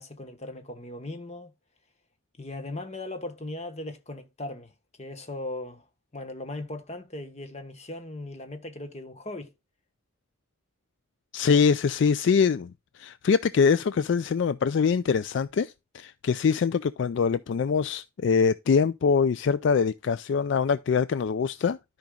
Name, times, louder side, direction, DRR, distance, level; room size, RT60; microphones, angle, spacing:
voice 1, 0.0-1.5 2.4-4.7 5.0-5.8 6.1-9.5, left 2 dB, 30° left, 1.2 m, -38 dB
voice 2, 11.3-21.8, left 6 dB, 55° left, 0.3 m, -24 dB
13.5 x 5.2 x 2.3 m
head